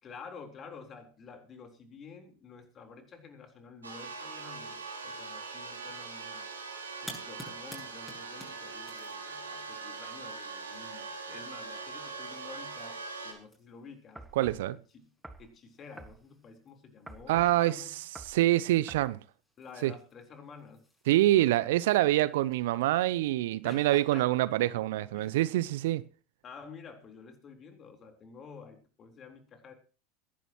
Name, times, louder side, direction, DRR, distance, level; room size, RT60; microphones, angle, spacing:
voice 1, 0.0-6.5 7.0-15.1 15.4-18.0 19.6-20.9 23.6-24.3 25.2-25.4 26.4-29.7, left 5 dB, 35° left, 3.8 m, -50 dB
sound 1, 3.8-13.3, right 4 dB, 85° right, 2.7 m, -42 dB
sound 2, 7.0-23.1, left 1 dB, 10° left, 7.2 m, -55 dB
sound 3, 14.2-14.7 15.2-15.5 16.0-16.2 17.1-17.6 18.2-18.4 18.9-19.1, right 2 dB, 5° right, 1.8 m, -47 dB
voice 2, 14.4-14.8 17.3-17.8 18.3-19.2 19.8-19.9 21.1-26.0, right 15 dB, 65° right, 0.6 m, -26 dB
22.5 x 11.0 x 3.0 m
hypercardioid pair, 80°, 0 cm